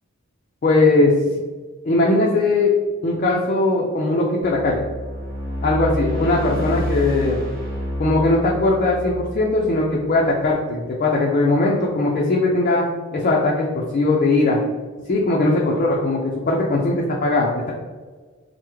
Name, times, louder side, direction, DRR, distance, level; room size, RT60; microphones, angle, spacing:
voice 1, 0.6-1.1 1.8-2.7 3.0-4.8 5.6-7.4 8.0-12.8 13.1-14.6 15.1-16.2 16.5-17.7, left 2 dB, 40° left, -3 dB, 0.4 m, -19 dB
sound 1, 4.4-10.6, equal, 60° right, 1.1 m, -29 dB
3.4 x 2.0 x 3.0 m, 1.4 s
head